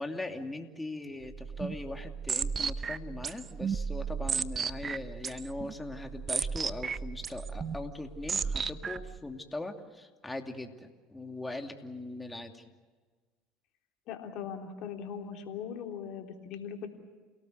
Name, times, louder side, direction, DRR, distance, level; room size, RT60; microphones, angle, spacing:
voice 1, 0.0-12.6, left 2 dB, 10° left, 4 dB, 2.7 m, -40 dB
sound 1, 1.3-9.2, right 6 dB, 35° right, 0.9 m, -35 dB
voice 2, 14.1-16.9, left 7 dB, 60° left, 3 dB, 3.5 m, -40 dB
29.0 x 18.0 x 8.1 m, 1.4 s
hypercardioid pair, 80°, 0 cm